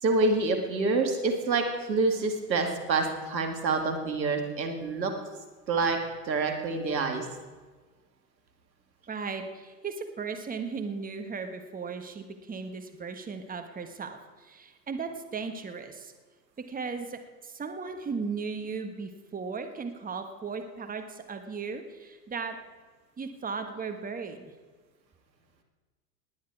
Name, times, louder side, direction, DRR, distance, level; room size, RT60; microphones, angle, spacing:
voice 1, 0.0-5.1 5.7-6.0 6.2-7.3, right 3 dB, 90° right, 5 dB, 2.0 m, -27 dB
voice 2, 9.1-16.1 16.7-22.6 23.2-24.5, right 5 dB, 15° right, 6 dB, 1.5 m, -36 dB
19.0 x 9.4 x 4.7 m, 1.4 s
hypercardioid pair, 90°, 50 cm